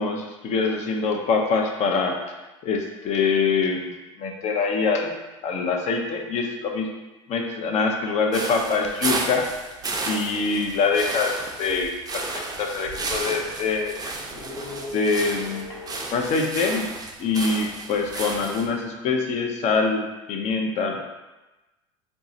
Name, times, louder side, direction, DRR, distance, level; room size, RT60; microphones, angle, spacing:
voice 1, 0.0-2.3 2.6-3.9 4.2-5.2 5.4-6.9 7.3-9.5 10.0-14.0 14.9-15.7 16.1-16.9 17.2-21.0, left 4 dB, 45° left, 2 dB, 0.6 m, -24 dB
sound 1, 8.3-18.7, right 3 dB, 25° right, 0.5 m, -33 dB
sound 2, 12.1-12.2 12.4-16.5 18.1-19.2, left 2 dB, 60° left, 0.9 m, -42 dB
4.4 x 2.0 x 2.7 m, 1.1 s
hypercardioid pair, 80°, 16 cm